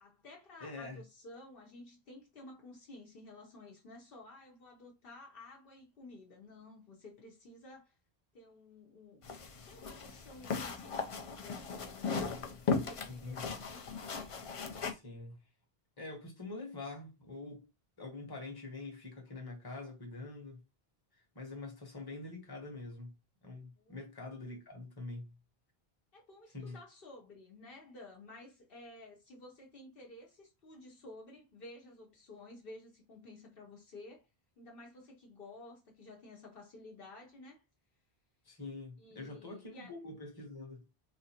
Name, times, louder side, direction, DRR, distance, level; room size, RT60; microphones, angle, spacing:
voice 1, 0.0-7.9 8.3-9.2 9.7-12.2 12.7-13.8 23.7-24.0 26.1-34.3 34.6-37.6 39.0-39.9, left 2 dB, 65° left, 1.0 m, -53 dB
voice 2, 0.6-1.0 13.1-13.6 14.8-15.4 16.0-17.6 18.0-20.6 21.1-23.1 23.4-25.3 26.5-26.8 38.4-40.9, left 3 dB, 25° left, 1.0 m, -45 dB
sound 1, 9.2-14.9, left 5 dB, 45° left, 0.4 m, -37 dB
4.1 x 2.5 x 2.8 m
omnidirectional pair, 1.0 m